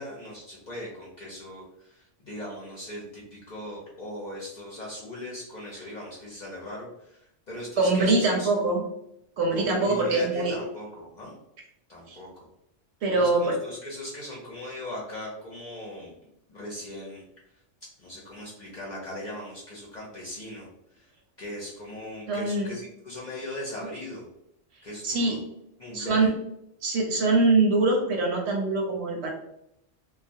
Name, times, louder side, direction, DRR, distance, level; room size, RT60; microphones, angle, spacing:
voice 1, 0.0-8.5 9.5-11.3 11.9-12.5 13.1-16.1 16.5-17.2 18.0-20.7 20.9-21.1 21.4-24.3 24.8-25.4 25.8-26.3, left 1 dB, 50° left, -4 dB, 0.6 m, -39 dB
voice 2, 7.8-8.8 9.4-10.6 12.1-12.2 13.0-13.6 22.3-22.7 25.0-25.4 25.9-26.3 26.8-29.3, right 3 dB, 70° right, 0 dB, 0.8 m, -23 dB
2.3 x 2.1 x 2.6 m, 0.78 s
omnidirectional pair, 1.3 m